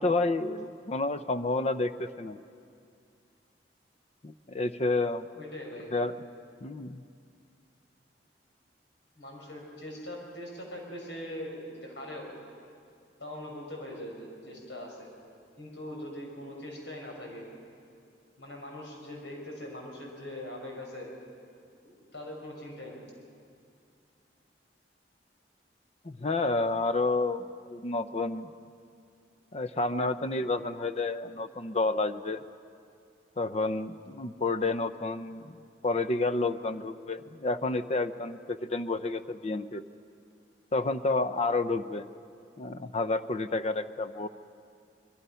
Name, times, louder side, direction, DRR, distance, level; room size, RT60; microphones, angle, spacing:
voice 1, 0.0-2.4 4.2-5.3 5.9-6.1 6.6-7.0 26.0-28.5 29.5-32.4 33.4-35.6 35.8-39.8 40.7-42.1 42.6-44.3, left 3 dB, 35° left, 11 dB, 0.6 m, -30 dB
voice 2, 5.3-5.9 9.1-12.3 13.2-15.1 15.6-17.5 18.4-21.1 21.8-23.0, left 1 dB, 90° left, 0 dB, 5.4 m, -41 dB
24.0 x 22.0 x 5.7 m, 2.3 s
head